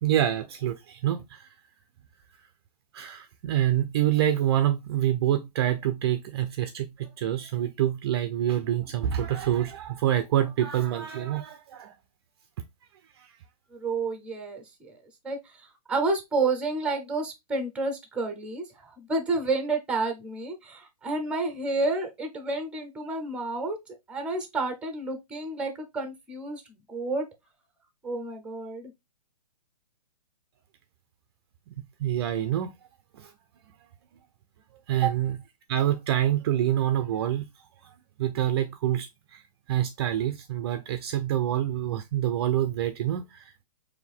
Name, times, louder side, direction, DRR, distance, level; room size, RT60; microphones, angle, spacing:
voice 1, 0.0-1.5 2.9-11.9 13.2-13.3 31.7-31.8 32.0-32.7 33.1-33.3 34.9-35.4 35.7-37.4 37.8-39.4 39.7-43.6, right 11 dB, 40° right, 0.5 m, -26 dB
voice 2, 13.7-15.0 15.2-23.8 24.1-27.3 28.0-28.9, right 3 dB, 5° right, 0.8 m, -30 dB
4.3 x 2.6 x 3.5 m
hypercardioid pair, 145°, 20 cm